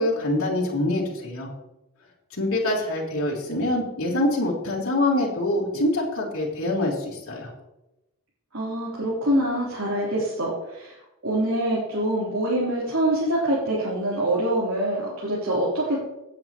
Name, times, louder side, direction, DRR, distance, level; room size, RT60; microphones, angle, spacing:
voice 1, 0.0-1.5 2.4-7.5, left 1 dB, 70° left, -5 dB, 3.4 m, -25 dB
voice 2, 8.5-11.0 11.2-16.0, right 1 dB, 70° right, -8 dB, 3.6 m, -25 dB
17.0 x 9.1 x 3.1 m, 0.94 s
head